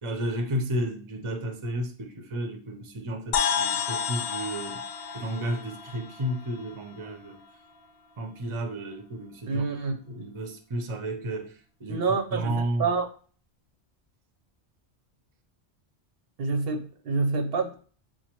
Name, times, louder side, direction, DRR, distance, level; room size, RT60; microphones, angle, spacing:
voice 1, 0.0-4.8 5.1-7.4 8.2-9.7 10.1-11.5 11.8-12.0 12.3-12.9, right 1 dB, 35° right, 0.6 m, -32 dB
sound 1, 3.3-7.1, left 7 dB, 70° left, 0.8 m, -31 dB
voice 2, 9.5-10.0 11.9-13.1 16.4-17.8, right 4 dB, 65° right, 0.8 m, -27 dB
7.1 x 2.4 x 2.9 m
omnidirectional pair, 1.1 m